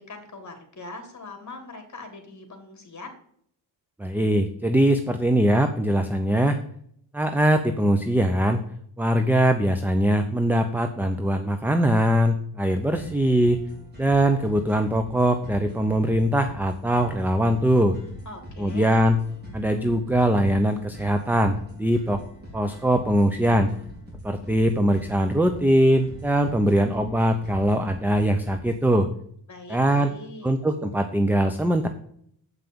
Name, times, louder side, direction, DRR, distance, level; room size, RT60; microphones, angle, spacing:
voice 1, 0.0-3.2 18.3-19.0 29.5-30.5, left 2 dB, 40° left, 5 dB, 2.6 m, -41 dB
voice 2, 4.0-6.6 7.1-8.6 9.0-13.6 14.0-18.0 18.6-19.2 19.5-22.2 22.5-23.7 24.2-29.1 29.7-30.1 30.4-31.9, right 1 dB, 5° right, 7 dB, 0.7 m, -21 dB
sound 1, 12.9-28.9, equal, 20° right, 4.3 m, -43 dB
8.2 x 5.8 x 6.9 m, 0.65 s
wide cardioid pair, 120°, 45 cm